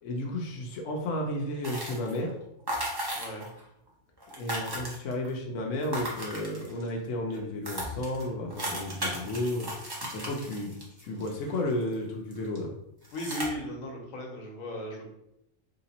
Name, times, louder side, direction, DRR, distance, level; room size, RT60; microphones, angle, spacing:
voice 1, 0.0-2.4 4.3-12.7, left 1 dB, 70° left, 1 dB, 1.0 m, -33 dB
sound 1, 1.6-2.2 2.7-3.6 3.9-4.0 4.2-5.3 5.8-6.9 7.3-7.4 7.6-11.9 12.3-12.6 13.0-13.5, right 1 dB, 25° right, 0.7 m, -36 dB
voice 2, 3.1-3.5 13.1-15.1, equal, 90° left, 1 dB, 1.3 m, -36 dB
3.4 x 2.8 x 4.0 m, 0.82 s
omnidirectional pair, 1.4 m